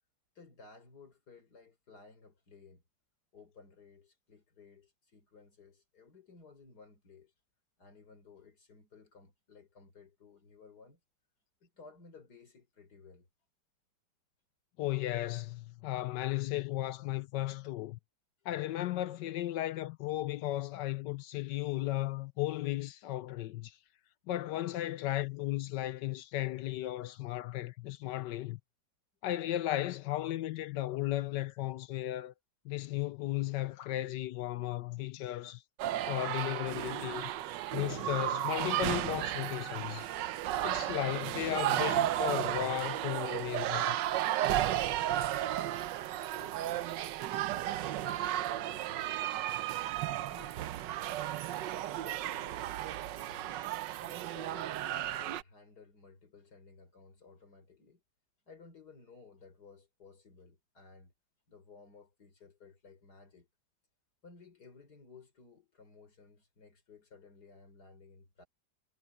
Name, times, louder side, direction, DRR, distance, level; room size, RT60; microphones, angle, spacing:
voice 1, 0.3-2.8 3.3-7.3 7.8-11.0 11.6-13.3 46.0-49.4 50.0-52.6 53.0-53.6 54.0-58.0 58.5-61.1 61.5-63.5 64.2-68.5, left 4 dB, 60° left, 4.6 m, -57 dB
voice 2, 14.8-18.0 18.4-23.8 24.3-28.6 29.2-32.3 32.6-35.6 36.1-37.3 37.7-40.1 40.6-44.0, left 15 dB, 75° left, 1.2 m, -35 dB
sound 1, 35.8-55.4, right 13 dB, 80° right, 1.3 m, -34 dB
omnidirectional pair, 2.0 m